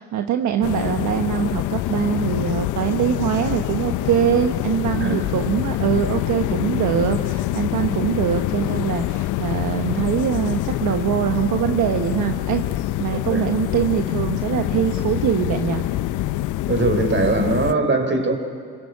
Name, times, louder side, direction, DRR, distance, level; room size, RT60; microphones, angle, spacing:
voice 1, 0.0-12.6 13.0-15.8, right 9 dB, 70° right, 1.3 m, -23 dB
sound 1, 0.6-17.7, left 15 dB, 80° left, 0.7 m, -25 dB
voice 2, 16.6-18.4, right 2 dB, 40° right, 4.3 m, -21 dB
25.0 x 23.5 x 8.6 m
cardioid pair, 80°, 30 cm